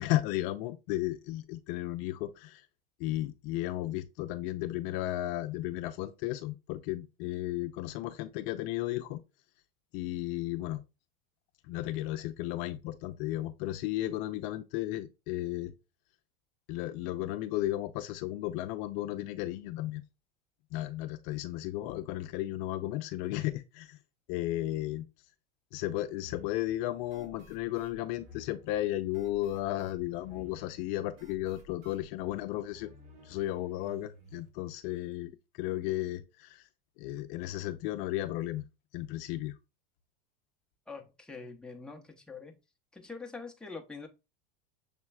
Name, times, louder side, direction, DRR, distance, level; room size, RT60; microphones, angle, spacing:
voice 1, 0.0-2.6 3.0-9.2 9.9-10.8 11.7-15.7 16.7-20.0 20.7-24.0 24.3-25.1 25.7-32.9 33.2-35.3 35.6-36.6 37.0-38.7 38.9-39.5, left 15 dB, 55° left, 0.5 m, -34 dB
sound 1, 26.2-34.5, left 2 dB, 55° right, 2.0 m, -54 dB
voice 2, 40.9-42.6 42.9-44.1, left 4 dB, 5° left, 0.7 m, -44 dB
6.6 x 3.0 x 2.3 m
hypercardioid pair, 105°, 31 cm